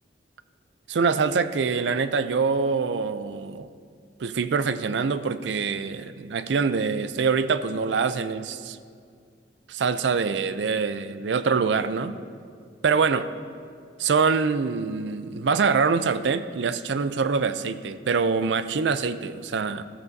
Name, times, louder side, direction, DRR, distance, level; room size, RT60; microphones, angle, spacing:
voice 1, 0.9-3.7 4.2-8.8 9.7-12.2 12.8-13.3 14.0-19.8, right 5 dB, 85° right, 13 dB, 0.4 m, -24 dB
13.5 x 13.0 x 2.7 m, 2.2 s
head